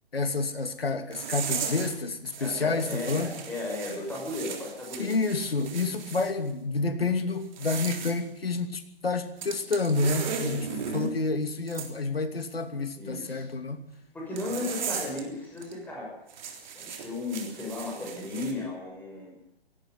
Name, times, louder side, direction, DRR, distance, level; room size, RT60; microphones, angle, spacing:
voice 1, 0.1-3.3 5.0-13.8, left 3 dB, 75° left, 8 dB, 2.7 m, -29 dB
sound 1, 1.1-2.0 2.2-6.3 7.4-8.2 9.4-11.1 11.7-11.9 14.4-15.2 15.6-15.7 16.3-18.5, right 7 dB, 50° right, 3.6 m, -36 dB
voice 2, 2.4-5.2 10.6-11.1 13.0-13.5 14.1-16.1 16.7-19.3, left 2 dB, 5° left, -3 dB, 6.6 m, -35 dB
18.0 x 16.0 x 9.6 m, 0.76 s
figure-of-eight pair, 130°, 30 cm